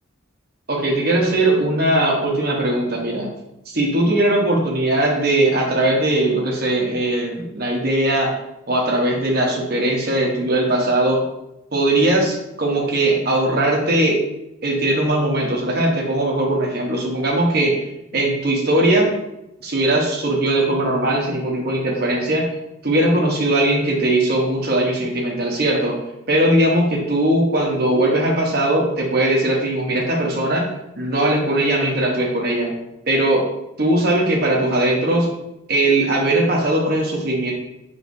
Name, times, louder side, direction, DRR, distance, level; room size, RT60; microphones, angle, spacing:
voice 1, 0.7-3.3 3.7-8.3 8.7-11.2 11.7-14.2 14.6-17.7 18.1-19.1 19.6-22.5 22.8-25.9 26.3-30.7 31.0-32.7 33.1-33.4 33.8-35.3 35.7-37.5, right 1 dB, 45° right, -2 dB, 0.9 m, -19 dB
4.9 x 3.1 x 2.6 m, 0.88 s
head